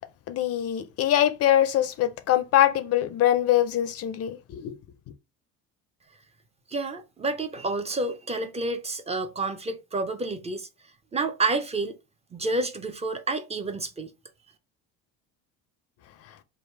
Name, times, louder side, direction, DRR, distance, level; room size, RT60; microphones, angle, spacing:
voice 1, 0.3-4.8, left 12 dB, 50° left, 0.5 m, -23 dB
voice 2, 6.7-10.7 11.1-11.9 12.3-14.1, right 2 dB, 20° right, 0.5 m, -29 dB
3.3 x 2.6 x 4.4 m
cardioid pair, 120°, 32 cm